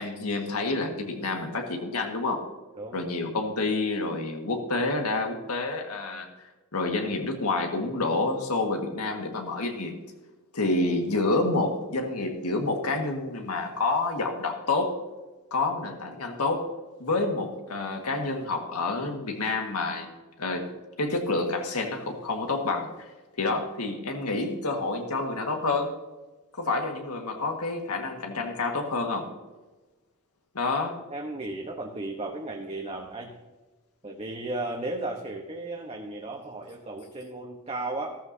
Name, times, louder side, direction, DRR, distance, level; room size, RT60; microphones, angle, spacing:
voice 1, 0.0-2.4 2.9-6.3 6.7-10.0 10.5-15.0 15.5-16.7 17.0-20.7 21.0-23.1 23.4-25.9 26.5-29.3 30.5-31.0, left 3 dB, 85° left, 3 dB, 1.8 m, -28 dB
voice 2, 31.1-33.3 34.0-38.2, right 2 dB, 25° right, 1 dB, 1.1 m, -35 dB
14.0 x 13.5 x 2.8 m, 1.2 s
head